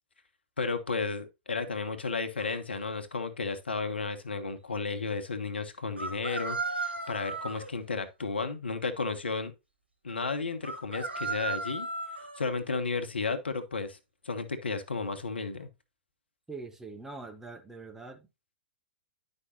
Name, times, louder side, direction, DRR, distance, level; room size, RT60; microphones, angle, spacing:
voice 1, 0.6-9.5 10.0-11.9 12.4-14.0 14.2-15.7, left 4 dB, 75° left, 1.1 m, -33 dB
sound 1, 2.4-2.6 6.0-7.7 10.6-12.5, right 3 dB, 80° right, 1.7 m, -35 dB
voice 2, 16.5-18.3, right 3 dB, 5° right, 0.8 m, -43 dB
9.9 x 5.4 x 2.8 m
figure-of-eight pair, 105°, 6 cm